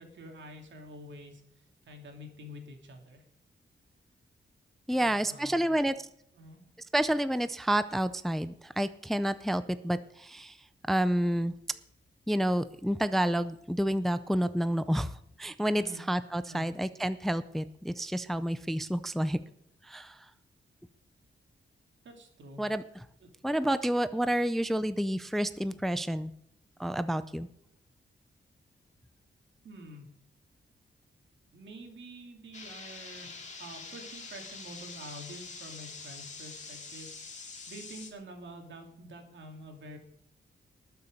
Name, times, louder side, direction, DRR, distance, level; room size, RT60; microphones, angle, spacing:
voice 1, 0.0-3.2 4.9-5.9 6.3-6.6 15.7-16.1 16.5-16.7 22.0-22.6 23.2-23.3 29.6-30.1 31.5-33.3 33.6-40.0, equal, 75° right, 3 dB, 2.9 m, -48 dB
voice 2, 4.9-5.9 6.9-10.6 10.9-11.5 12.3-15.1 15.4-19.4 19.9-20.1 22.6-22.8 23.4-26.3 26.8-27.5, right 1 dB, ahead, 13 dB, 0.4 m, -29 dB
sound 1, 32.5-38.1, left 4 dB, 40° left, 2.2 m, -45 dB
19.5 x 6.9 x 6.6 m, 0.71 s
wide cardioid pair, 175°, 19 cm